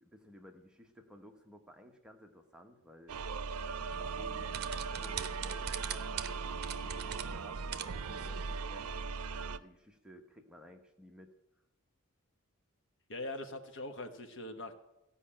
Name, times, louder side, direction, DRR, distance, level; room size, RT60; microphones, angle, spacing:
voice 1, 0.0-3.2 4.0-9.0 9.5-11.3, equal, 5° right, 3 dB, 1.0 m, -56 dB
sound 1, 3.1-9.6, right 5 dB, 85° right, 0.5 m, -39 dB
sound 2, 3.9-8.6, right 8 dB, 50° right, 0.7 m, -43 dB
voice 2, 13.1-14.8, left 2 dB, 60° left, 7 dB, 1.1 m, -42 dB
14.5 x 5.6 x 8.7 m, 0.90 s
head